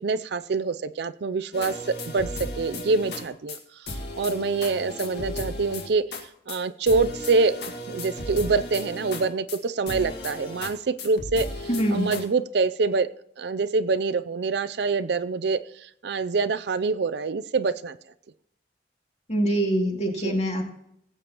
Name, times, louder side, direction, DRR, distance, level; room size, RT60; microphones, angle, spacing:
voice 1, 0.0-6.0 6.5-7.6 7.9-13.1 13.4-18.0 20.2-20.4, right 4 dB, 65° right, 13 dB, 0.5 m, -25 dB
sound 1, 1.5-3.2 3.5-3.6 3.9-6.2 6.5-6.6 6.9-9.6 9.9-10.7 11.0-12.2, left 1 dB, 60° left, 1.9 m, -35 dB
voice 2, 11.7-12.1 19.3-20.6, right 1 dB, 35° left, 1 dB, 2.4 m, -24 dB
19.0 x 8.4 x 3.0 m, 0.74 s
head